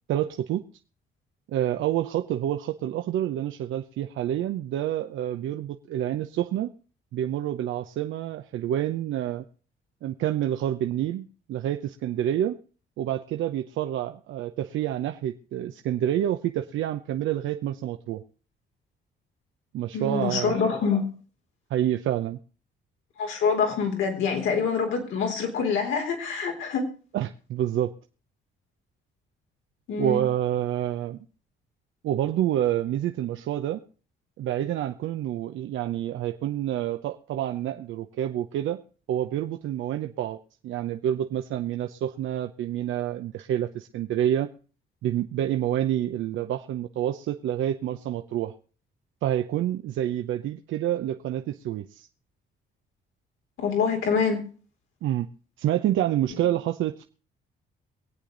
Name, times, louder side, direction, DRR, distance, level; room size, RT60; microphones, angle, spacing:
voice 1, 0.1-0.6 1.5-6.7 7.1-9.4 10.0-12.6 13.0-18.2 19.7-20.7 21.7-22.4 27.1-27.9 30.0-31.2 32.0-33.8 34.4-38.8 39.1-40.4 40.6-44.5 45.0-48.5 49.2-52.1 55.0-55.3 55.6-57.0, right 11 dB, 80° right, 6 dB, 0.8 m, -28 dB
voice 2, 19.9-21.1 23.2-26.8 29.9-30.2 53.6-54.5, left 5 dB, 85° left, 3 dB, 3.8 m, -25 dB
23.0 x 8.6 x 3.9 m, 0.38 s
cardioid pair, 90°, 20 cm